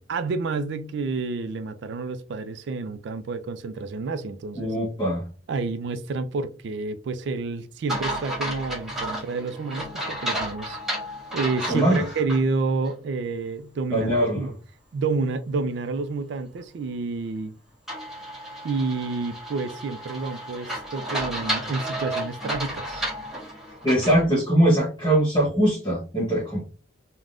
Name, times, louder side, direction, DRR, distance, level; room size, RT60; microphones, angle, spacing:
voice 1, 0.1-4.7 5.5-10.8 11.3-14.5 14.9-17.5 18.6-23.0, right 3 dB, 60° right, 0.3 m, -29 dB
voice 2, 4.6-5.2 11.7-12.0 13.9-14.5 23.8-26.6, right 1 dB, 25° left, 0.8 m, -21 dB
sound 1, 7.9-12.4 12.8-12.9 17.9-24.2, right 1 dB, ahead, 1.2 m, -32 dB
3.4 x 2.1 x 2.4 m
head